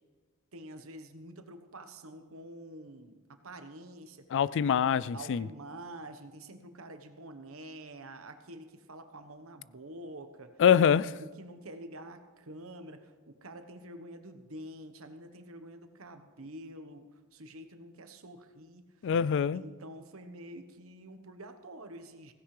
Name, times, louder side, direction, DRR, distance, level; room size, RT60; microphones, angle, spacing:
voice 1, 0.5-4.8 5.1-10.6 11.2-19.1 19.5-22.3, right 1 dB, 70° right, 1.2 m, -47 dB
voice 2, 4.3-5.5 10.6-11.1 19.0-19.6, left 8 dB, 60° left, 0.3 m, -24 dB
16.5 x 15.5 x 3.3 m
head